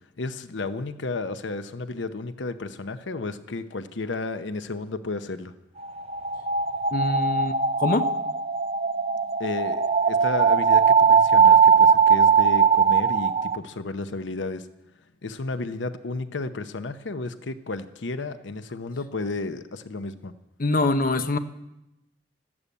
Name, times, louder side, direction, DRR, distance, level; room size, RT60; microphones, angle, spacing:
voice 1, 0.2-5.5 9.4-14.7 15.2-20.3, left 3 dB, 80° left, 11 dB, 0.8 m, -32 dB
sound 1, 5.8-13.6, right 6 dB, 30° right, 0.6 m, -20 dB
voice 2, 6.9-8.1 20.6-21.4, left 2 dB, 50° left, 10 dB, 0.8 m, -24 dB
13.0 x 12.0 x 8.4 m, 0.91 s
head